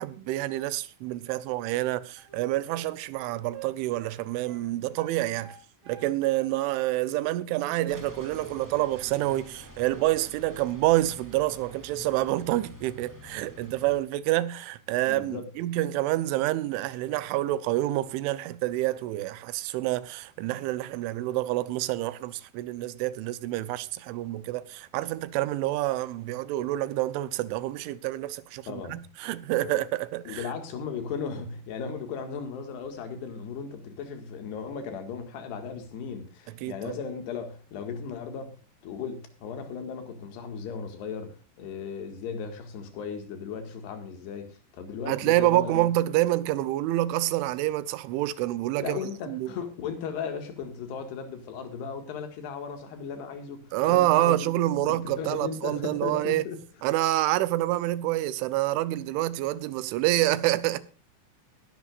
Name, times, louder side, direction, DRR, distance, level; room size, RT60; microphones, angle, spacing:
voice 1, 0.0-5.6 5.9-30.4 36.6-37.0 45.1-49.0 49.3-49.5 53.7-56.4 56.8-60.8, right 16 dB, 90° right, 3.3 m, -27 dB
sound 1, 2.2-2.9 3.1-4.7 5.0-6.1 6.4-7.4 7.8-8.9 9.1-9.4, right 10 dB, 45° right, 3.4 m, -47 dB
sound 2, 7.9-14.0, left 1 dB, 10° right, 1.1 m, -48 dB
voice 2, 15.1-15.5 28.7-29.0 29.6-29.8 30.3-45.8 48.8-54.5 54.9-56.6, left 6 dB, 65° left, 3.8 m, -36 dB
20.0 x 11.5 x 2.5 m
omnidirectional pair, 5.3 m